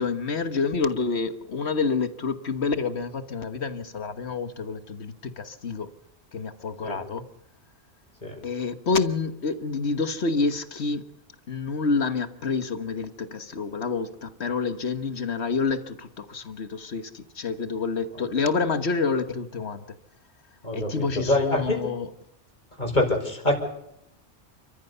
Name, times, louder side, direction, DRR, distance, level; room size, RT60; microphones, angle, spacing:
voice 1, 0.0-5.9 6.3-7.3 8.4-11.1 11.5-19.8 20.7-22.1, left 4 dB, 65° left, 1.6 m, -28 dB
voice 2, 20.6-21.9 22.8-23.6, left 1 dB, 40° left, 5.4 m, -25 dB
29.5 x 14.0 x 6.8 m
omnidirectional pair, 1.2 m